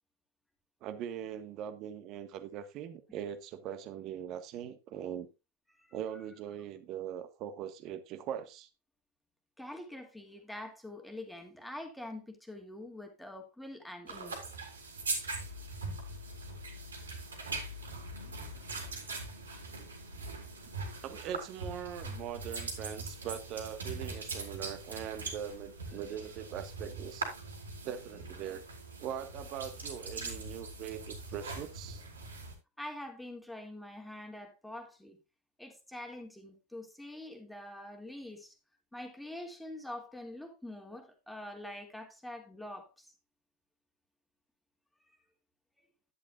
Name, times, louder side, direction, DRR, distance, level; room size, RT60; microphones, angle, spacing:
voice 1, 0.8-5.3 5.9-8.7 21.0-27.3 27.8-28.6 29.0-32.0, right 9 dB, 35° right, 1.4 m, -41 dB
voice 2, 9.6-14.4 32.8-35.2 35.6-38.5 38.9-43.1, left 1 dB, 5° left, 2.4 m, -45 dB
sound 1, 14.1-32.5, right 3 dB, 70° right, 3.7 m, -41 dB
11.0 x 11.0 x 2.4 m
figure-of-eight pair, 90°, 0 cm